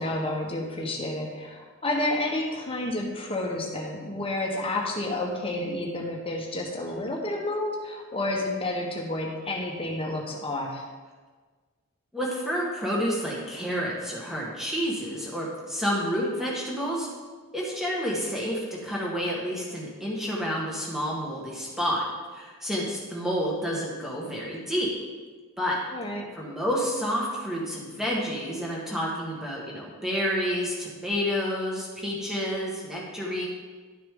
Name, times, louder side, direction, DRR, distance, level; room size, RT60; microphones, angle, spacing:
voice 1, 0.0-10.8 25.9-26.3, left 1 dB, 25° left, 0 dB, 1.2 m, -30 dB
voice 2, 12.1-17.1 17.5-22.0 22.3-24.9 25.6-25.8 26.3-33.5, equal, ahead, -4 dB, 1.7 m, -29 dB
11.5 x 6.6 x 3.8 m, 1.4 s
head